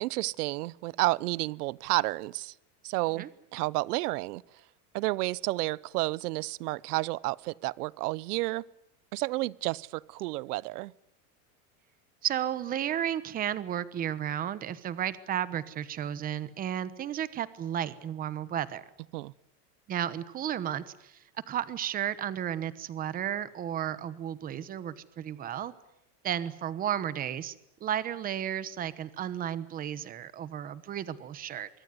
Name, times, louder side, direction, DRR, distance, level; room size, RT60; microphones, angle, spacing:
voice 1, 0.0-2.5 2.8-4.4 4.9-8.6 9.1-10.9 19.1-19.3, right 20 dB, 80° right, 1.0 m, -31 dB
voice 2, 12.2-18.8 19.9-25.7 26.2-27.5 27.8-31.7, right 10 dB, 20° right, 1.1 m, -33 dB
24.0 x 24.0 x 9.6 m
supercardioid pair, 180°, 45 cm